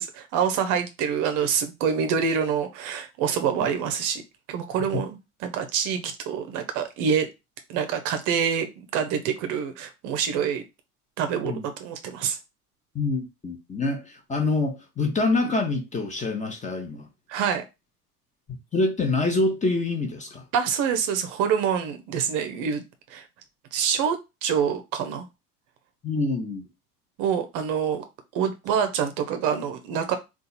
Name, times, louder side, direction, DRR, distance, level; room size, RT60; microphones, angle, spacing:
voice 1, 0.0-4.2 4.5-5.2 5.4-7.3 7.7-10.6 11.2-12.4 17.3-17.6 20.5-22.8 23.1-23.2 23.7-24.2 24.4-25.3 27.2-28.0 28.3-30.2, right 7 dB, 40° right, 0.7 m, -26 dB
voice 2, 12.9-17.1 18.7-20.4 26.0-26.6, left 3 dB, 15° left, 0.9 m, -26 dB
3.8 x 2.4 x 4.0 m
figure-of-eight pair, 70°, 46 cm